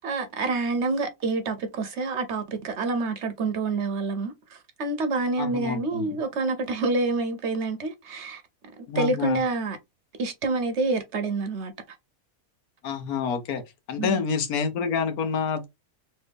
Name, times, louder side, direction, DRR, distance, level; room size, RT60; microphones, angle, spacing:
voice 1, 0.0-8.4 8.9-9.8 10.2-11.7 14.0-14.2, right 3 dB, 60° right, 0.8 m, -27 dB
voice 2, 5.4-6.1 8.9-9.4 12.8-13.6 13.9-15.7, left 6 dB, 80° left, 1.3 m, -28 dB
3.2 x 2.8 x 3.4 m
omnidirectional pair, 1.6 m